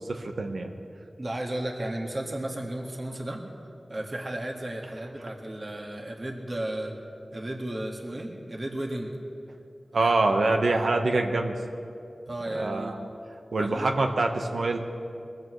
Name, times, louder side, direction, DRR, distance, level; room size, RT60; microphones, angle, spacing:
voice 1, 0.1-0.7 9.9-11.5 12.5-13.1 13.5-14.8, right 2 dB, 85° right, 3 dB, 1.1 m, -25 dB
voice 2, 1.2-3.4 3.9-6.9 7.3-9.1 10.0-10.1 12.3-13.0 13.6-13.9, right 1 dB, 45° right, 0 dB, 1.7 m, -34 dB
22.0 x 15.0 x 3.2 m, 2.6 s
wide cardioid pair, 75°, 0 cm